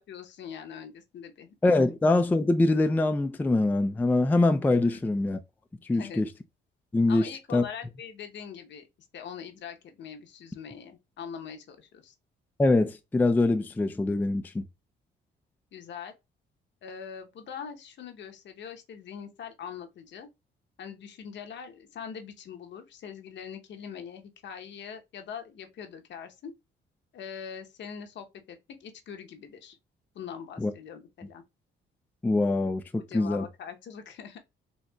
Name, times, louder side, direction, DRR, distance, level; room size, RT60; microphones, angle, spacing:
voice 1, 0.0-1.5 4.8-5.0 5.9-6.2 7.1-8.9 9.1-12.1 15.7-16.1 16.8-20.3 20.8-26.5 27.1-29.8 30.1-31.4 33.1-34.4, left 7 dB, 65° left, 0.8 m, -42 dB
voice 2, 1.6-5.4 5.9-6.3 6.9-7.6 12.6-14.6 30.6-30.7 32.2-32.8 33.1-33.4, left 2 dB, 10° left, 0.3 m, -24 dB
4.1 x 2.8 x 2.2 m
cardioid pair, 90°, 20 cm